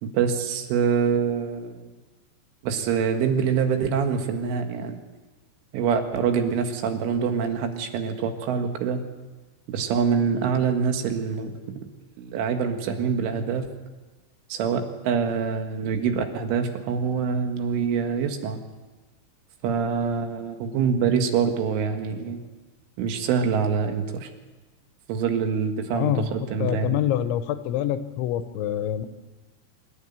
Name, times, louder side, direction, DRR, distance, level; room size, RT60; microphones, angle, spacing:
voice 1, 0.0-1.9 2.6-5.0 5.7-9.0 9.7-11.5 12.2-13.7 14.5-18.6 19.6-22.4 23.0-24.3 25.1-27.0, right 6 dB, 85° right, 5 dB, 4.2 m, -25 dB
voice 2, 25.9-26.3 26.6-29.1, left 11 dB, 85° left, 11 dB, 3.3 m, -26 dB
25.0 x 12.0 x 9.0 m, 1.2 s
omnidirectional pair, 5.5 m